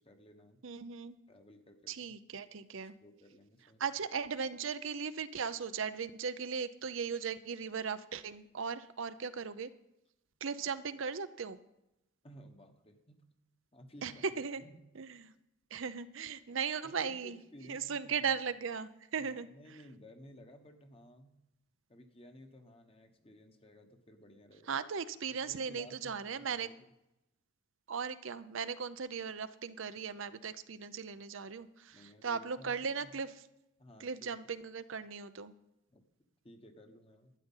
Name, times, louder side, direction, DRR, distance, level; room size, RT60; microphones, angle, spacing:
voice 1, 0.0-0.6 1.3-2.1 3.0-3.8 12.2-13.3 13.7-14.8 16.8-18.3 19.2-21.4 21.9-24.7 25.5-26.9 31.9-33.2 33.8-34.3 35.9-37.3, equal, 25° left, 6 dB, 1.2 m, -56 dB
voice 2, 0.6-1.2 1.9-2.9 3.8-9.7 10.4-11.6 14.0-14.1 14.4-14.6 15.0-15.3 15.7-17.4 17.7-19.5 24.7-26.7 27.9-33.3 34.0-35.5, right 6 dB, 65° right, 12 dB, 0.6 m, -38 dB
12.5 x 9.5 x 5.6 m, 0.90 s
head